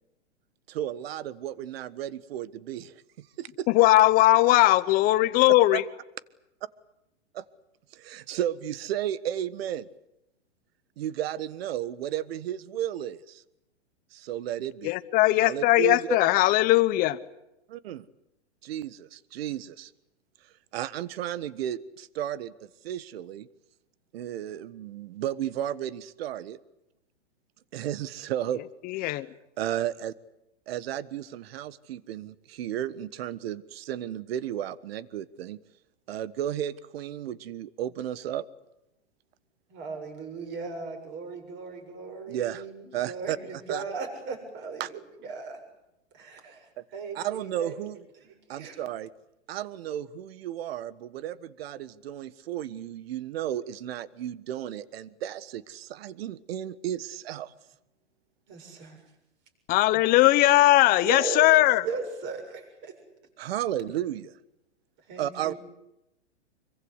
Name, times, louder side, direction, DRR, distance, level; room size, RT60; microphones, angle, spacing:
voice 1, 0.7-3.7 5.7-5.8 7.3-7.4 7.9-9.9 11.0-13.4 14.1-14.9 15.4-16.3 17.7-18.0 18.6-19.9 20.4-23.5 24.1-26.6 27.7-28.6 29.0-29.2 29.6-30.1 30.7-35.6 36.1-38.4 42.3-42.6 42.9-43.8 44.8-44.9 46.8-46.9 47.1-48.0 48.5-49.1 49.5-57.5 63.4-64.4 65.2-65.5, right 11 dB, 55° right, 17 dB, 1.4 m, -33 dB
voice 2, 3.7-5.8 14.8-17.2 28.8-29.3 59.7-61.9, left 17 dB, 25° left, 14 dB, 0.9 m, -20 dB
voice 3, 39.7-45.6 46.1-46.7 46.9-47.8 48.2-48.8 58.5-59.0 60.9-61.6 61.8-62.9 63.9-64.0 65.1-65.6, right 4 dB, 30° right, 5 dB, 7.3 m, -37 dB
26.5 x 24.0 x 8.2 m, 0.91 s
hypercardioid pair, 150°, 35 cm